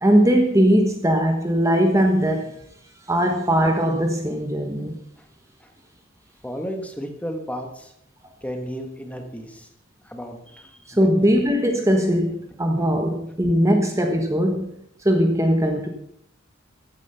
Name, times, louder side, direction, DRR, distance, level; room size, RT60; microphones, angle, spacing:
voice 1, 0.0-2.5 3.1-5.0 10.9-14.7 15.0-15.9, equal, 15° right, 1.3 m, -20 dB
voice 2, 6.4-7.9 8.4-9.7 10.0-11.1, equal, 5° left, 1.5 m, -33 dB
14.5 x 9.6 x 5.7 m
head